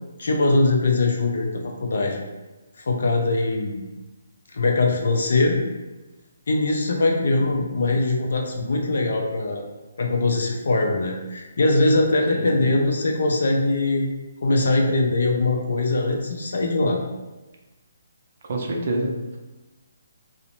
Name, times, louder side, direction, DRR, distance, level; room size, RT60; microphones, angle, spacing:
voice 1, 0.2-2.2 2.8-3.8 4.5-5.6 6.5-9.7 10.0-14.1 14.4-17.0, left 2 dB, 65° left, 1 dB, 0.4 m, -22 dB
voice 2, 18.5-19.4, right 1 dB, 45° right, 1 dB, 0.4 m, -27 dB
2.5 x 2.0 x 2.9 m, 1.1 s
hypercardioid pair, 170°, 0 cm